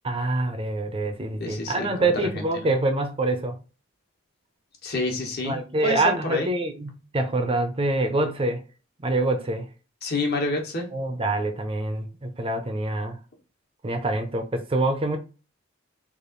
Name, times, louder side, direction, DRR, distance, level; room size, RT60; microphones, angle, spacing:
voice 1, 0.0-3.6 5.4-8.6 9.0-9.7 10.9-13.2 13.8-15.2, right 2 dB, 30° right, 0.5 m, -25 dB
voice 2, 1.4-2.7 4.8-6.5 10.0-10.9, left 2 dB, 55° left, 1.2 m, -28 dB
3.4 x 2.5 x 3.9 m
head